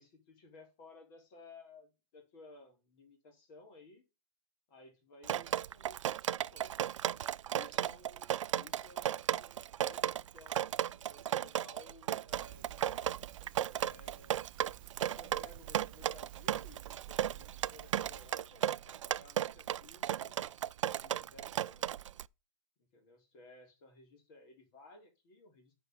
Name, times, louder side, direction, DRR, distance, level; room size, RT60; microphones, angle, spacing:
voice 1, 0.0-4.0 4.7-6.9 7.5-14.3 14.8-20.5 20.9-22.0 22.8-25.7, left 2 dB, 40° left, 5 dB, 3.9 m, -58 dB
Drip, 5.2-22.3, right 11 dB, 70° right, 0.5 m, -35 dB
Crackle, 12.3-18.3, right 13 dB, 45° right, 0.8 m, -52 dB
8.9 x 4.7 x 7.3 m, 0.28 s
hypercardioid pair, 140°, 16 cm